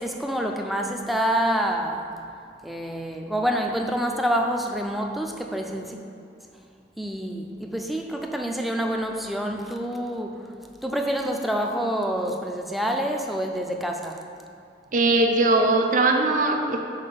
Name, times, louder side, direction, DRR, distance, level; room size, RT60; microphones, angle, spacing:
voice 1, 0.0-2.1 2.6-6.0 7.0-10.5 10.8-14.2, equal, ahead, 2 dB, 0.4 m, -27 dB
voice 2, 14.9-16.8, right 2 dB, 45° right, 3 dB, 0.5 m, -20 dB
5.7 x 4.2 x 5.3 m, 2.5 s
head